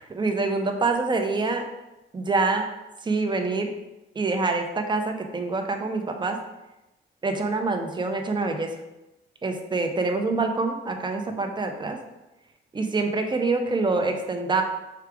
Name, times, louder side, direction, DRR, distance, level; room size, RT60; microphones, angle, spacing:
voice 1, 0.0-1.6 2.1-2.6 3.0-3.7 4.1-6.4 7.2-8.7 9.4-12.0 12.7-14.6, right 3 dB, 25° right, 4 dB, 0.6 m, -26 dB
4.7 x 2.4 x 4.7 m, 0.99 s
cardioid pair, 90°, 20 cm